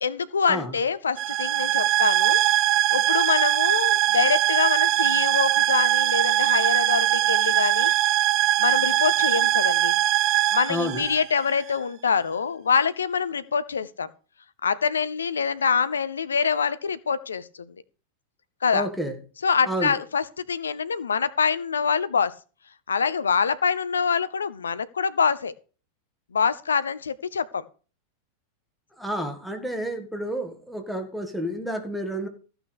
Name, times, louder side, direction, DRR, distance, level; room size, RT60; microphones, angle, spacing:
voice 1, 0.0-2.4 2.9-8.1 8.6-10.0 10.5-14.1 14.6-17.7 18.6-18.9 19.4-22.3 22.9-25.5 26.3-27.6, left 6 dB, 70° left, 15 dB, 0.7 m, -25 dB
sound 1, 1.2-11.7, right 15 dB, 40° right, 0.5 m, -21 dB
voice 2, 10.7-11.1 18.7-19.2 19.7-20.0 29.0-32.3, equal, ahead, 5 dB, 2.1 m, -30 dB
14.5 x 6.0 x 6.5 m, 0.37 s
figure-of-eight pair, 90°, 0 cm